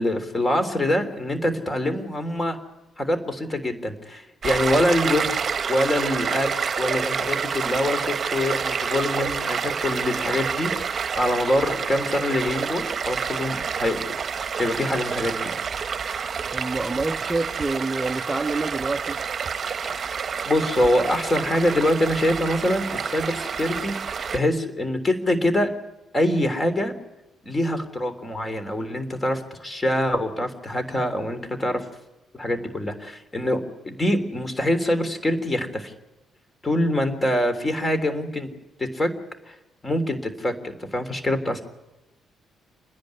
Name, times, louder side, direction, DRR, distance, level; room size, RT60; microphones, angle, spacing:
voice 1, 0.0-2.6 3.0-5.3 5.7-6.5 6.8-14.0 14.5-15.5 19.8-20.0 20.4-23.9 24.3-25.7 26.1-26.9 27.4-31.8 32.3-35.9 36.6-38.5 38.8-39.1 39.5-39.6 39.8-41.6, left 1 dB, 20° left, 3.5 m, -24 dB
Stream, 4.4-24.4, right 6 dB, 45° right, 1.1 m, -28 dB
voice 2, 16.5-19.2, right 3 dB, 15° right, 0.7 m, -27 dB
28.5 x 10.5 x 9.7 m
cardioid pair, 90°, 0 cm